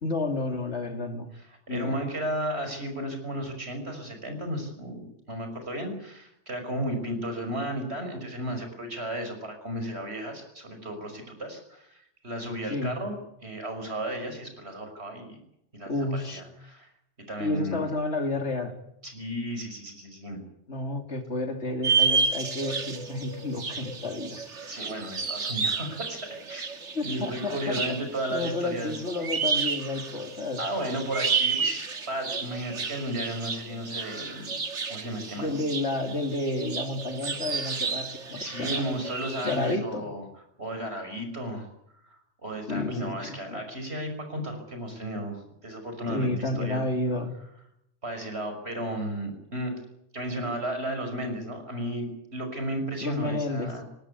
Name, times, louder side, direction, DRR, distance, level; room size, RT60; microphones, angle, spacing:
voice 1, 0.0-1.3 1.7-2.0 12.7-12.9 15.9-16.4 17.4-18.7 20.7-24.5 26.9-27.6 28.3-30.6 35.4-38.8 39.4-40.0 42.7-43.6 46.1-47.3 53.0-53.7, left 2 dB, 70° left, 6 dB, 3.1 m, -30 dB
voice 2, 1.3-13.1 13.4-15.4 15.7-16.9 17.3-17.9 19.0-20.4 24.7-26.7 27.0-29.0 30.6-34.6 34.9-35.6 38.4-40.3 40.6-41.7 42.1-46.8 48.0-49.7 50.1-53.8, right 1 dB, 60° right, 6 dB, 6.1 m, -34 dB
sound 1, 21.8-39.7, right 5 dB, 80° right, 2.1 m, -31 dB
20.0 x 18.5 x 9.7 m, 0.77 s
omnidirectional pair, 1.2 m